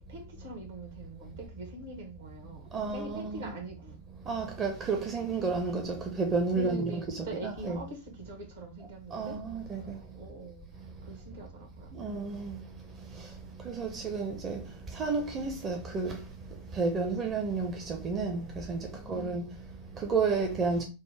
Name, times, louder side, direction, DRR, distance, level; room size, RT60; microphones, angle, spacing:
voice 1, 0.0-4.0 6.5-9.4 9.8-10.7 11.0-11.9 18.9-19.4, right 2 dB, 60° right, 1.2 m, -43 dB
voice 2, 2.7-3.5 4.3-7.8 9.1-10.0 11.1-11.2 11.9-12.8 13.1-20.8, right 4 dB, 25° right, 0.7 m, -32 dB
5.3 x 2.1 x 3.3 m
figure-of-eight pair, 90°, 0 cm